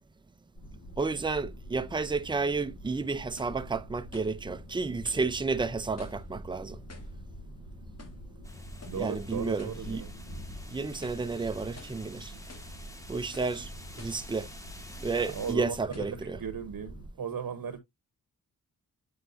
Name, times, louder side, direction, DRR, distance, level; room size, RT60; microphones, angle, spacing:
sound 1, 0.5-17.1, equal, 75° left, 3.5 m, -45 dB
voice 1, 1.0-6.8 9.0-10.0 10.7-12.3 13.1-13.7 14.0-14.5 15.0-16.4, right 4 dB, 15° right, 0.5 m, -31 dB
sound 2, 3.4-3.6 4.1-4.4 5.0-5.3 6.0-6.3 6.9-7.2 8.0-8.3 8.8-9.1 9.6-9.9 10.3-10.4 10.9-11.3 11.8-12.0 12.5-12.8 13.3-13.6 14.0-14.3 15.0-15.1 15.9-16.2, left 3 dB, 45° left, 1.7 m, -52 dB
sound 3, 8.4-15.5, left 1 dB, 10° left, 1.1 m, -51 dB
voice 2, 8.8-10.1 15.2-17.8, right 7 dB, 80° right, 1.1 m, -36 dB
8.1 x 4.7 x 2.6 m
wide cardioid pair, 130°, 35 cm